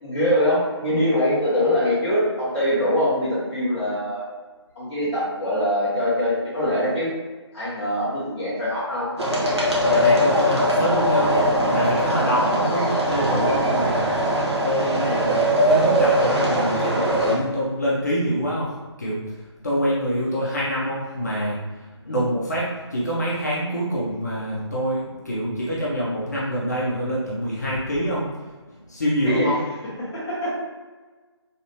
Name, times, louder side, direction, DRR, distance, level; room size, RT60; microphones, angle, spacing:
voice 1, 0.0-4.2 4.7-7.1 7.5-9.1 22.1-22.2 29.2-29.5 30.0-30.5, left 1 dB, 10° left, -13 dB, 0.8 m, -23 dB
sound 1, 9.2-17.4, equal, 65° right, 1.1 m, -21 dB
voice 2, 9.8-14.1 14.6-18.7 19.0-21.6 22.1-28.3 28.9-29.6, equal, 35° left, -7 dB, 0.7 m, -26 dB
3.2 x 2.6 x 2.9 m, 1.3 s
figure-of-eight pair, 160°, 15 cm